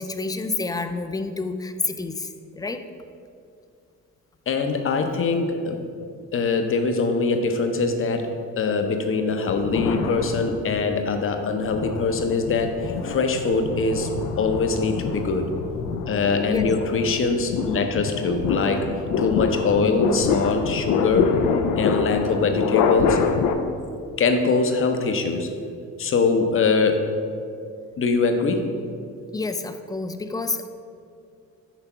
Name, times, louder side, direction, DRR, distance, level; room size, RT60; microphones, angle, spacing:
voice 1, 0.0-2.8 16.5-16.7 29.3-30.7, left 3 dB, 15° left, 8 dB, 0.3 m, -29 dB
voice 2, 4.5-5.8 6.3-14.1 14.4-15.5 16.1-18.9 19.2-21.3 21.8-23.2 24.2-25.5 26.0-27.1 28.0-28.7, left 4 dB, 45° left, 6 dB, 0.7 m, -23 dB
sound 1, 9.5-10.9 11.4-23.5, left 6 dB, 85° left, 0.5 m, -26 dB
5.9 x 3.4 x 5.6 m, 2.3 s
cardioid pair, 90°, 30 cm